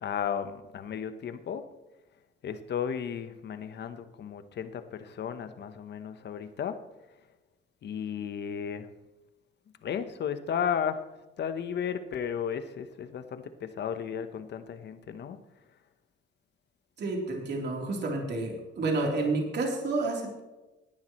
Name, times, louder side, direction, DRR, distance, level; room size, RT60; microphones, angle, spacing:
voice 1, 0.0-1.6 2.4-6.8 7.8-8.9 9.8-11.0 11.4-15.4, left 8 dB, 60° left, 10 dB, 1.1 m, -34 dB
voice 2, 17.0-20.4, right 2 dB, 60° right, 0 dB, 3.5 m, -30 dB
17.5 x 10.5 x 3.1 m, 1.1 s
cardioid pair, 90°, 20 cm